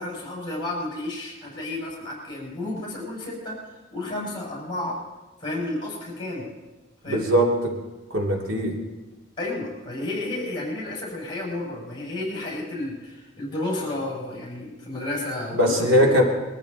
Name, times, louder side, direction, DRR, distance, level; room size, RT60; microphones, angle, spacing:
voice 1, 0.0-3.6 3.9-5.0 5.4-6.5 7.0-7.3 9.4-16.2, left 2 dB, 25° left, -3 dB, 5.7 m, -32 dB
voice 2, 7.1-7.7 8.1-8.7 15.5-16.2, equal, 85° right, 0 dB, 2.8 m, -20 dB
22.0 x 14.0 x 4.0 m, 1.2 s
head